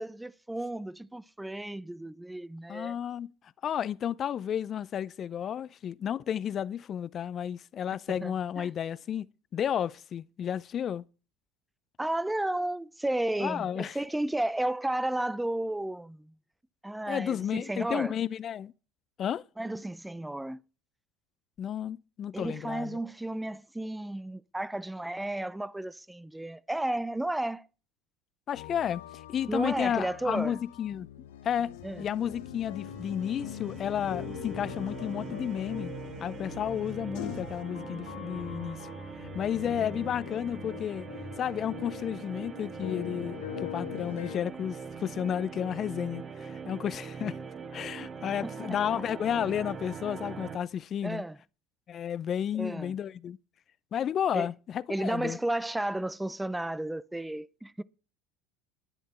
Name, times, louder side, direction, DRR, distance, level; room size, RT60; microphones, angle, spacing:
voice 1, 0.0-3.0 8.1-8.7 12.0-16.3 16.8-18.2 19.6-20.6 22.3-27.7 29.5-30.6 31.8-32.0 48.6-49.0 51.0-51.4 52.5-53.0 54.3-54.5 54.9-57.8, right 1 dB, 5° right, 0.6 m, -33 dB
voice 2, 2.7-3.3 3.6-11.0 13.4-14.0 17.1-18.7 19.2-19.4 21.6-23.0 28.5-29.0 29.3-31.1 31.4-35.9 36.2-38.8 39.3-41.1 41.4-47.4 47.7-51.2 51.9-53.4 53.9-55.4, left 9 dB, 40° left, 0.6 m, -32 dB
sound 1, 28.5-44.4, left 13 dB, 80° left, 1.0 m, -43 dB
sound 2, 31.8-37.6, left 6 dB, 65° left, 2.8 m, -44 dB
sound 3, 32.7-50.6, right 5 dB, 30° right, 1.5 m, -42 dB
12.0 x 10.0 x 4.4 m
hypercardioid pair, 80°, 0 cm